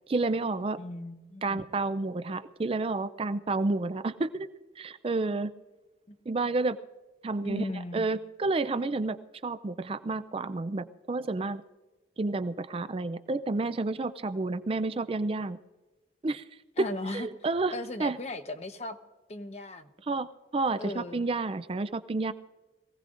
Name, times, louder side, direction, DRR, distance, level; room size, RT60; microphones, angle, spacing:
voice 1, 0.1-0.8 1.4-4.5 4.8-5.5 6.3-6.8 7.2-7.7 7.9-9.2 9.4-11.6 12.2-15.6 16.2-16.4 16.8-17.7 18.0-18.2 20.1-20.3 20.5-22.3, right 3 dB, 30° right, 13 dB, 0.4 m, -30 dB
voice 2, 0.8-1.6 6.1-6.2 7.4-8.1 16.8-17.3 17.7-19.0 19.3-19.9 20.8-21.2, left 1 dB, 40° left, 7 dB, 1.0 m, -37 dB
22.5 x 16.5 x 2.5 m, 1.2 s
head